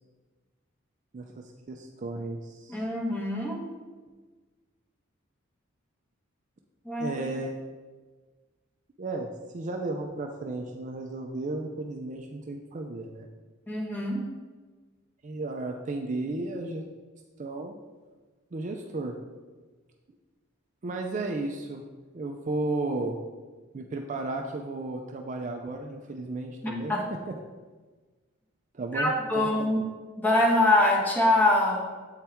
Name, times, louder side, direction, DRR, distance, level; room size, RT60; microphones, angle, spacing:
voice 1, 1.1-2.8 7.0-7.5 9.0-13.3 15.2-16.8 17.4-17.8 18.5-19.1 20.8-21.8 22.1-23.2 23.7-26.9 27.3-27.4 28.7-29.7, right 2 dB, 35° right, 3 dB, 0.4 m, -34 dB
voice 2, 2.7-3.6 6.8-7.2 13.7-14.3 26.6-27.0 28.9-29.8 30.2-31.9, left 1 dB, 10° left, -3 dB, 1.1 m, -24 dB
8.0 x 4.3 x 3.5 m, 1.3 s
head